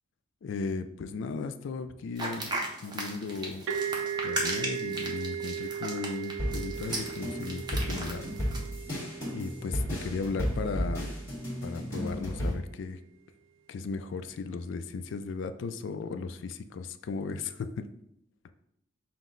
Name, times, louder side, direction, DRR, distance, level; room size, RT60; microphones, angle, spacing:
voice 1, 0.4-2.5 2.8-3.7 4.2-8.3 9.3-11.1 11.6-13.0 13.7-17.8, left 4 dB, 65° left, 10 dB, 0.3 m, -36 dB
sound 1, 2.2-8.7, right 2 dB, 20° right, 0.6 m, -36 dB
sound 2, 3.7-11.2, right 8 dB, 75° right, 0.5 m, -37 dB
sound 3, 6.4-12.5, equal, 15° left, 1.6 m, -34 dB
5.8 x 2.0 x 3.8 m, 0.75 s
head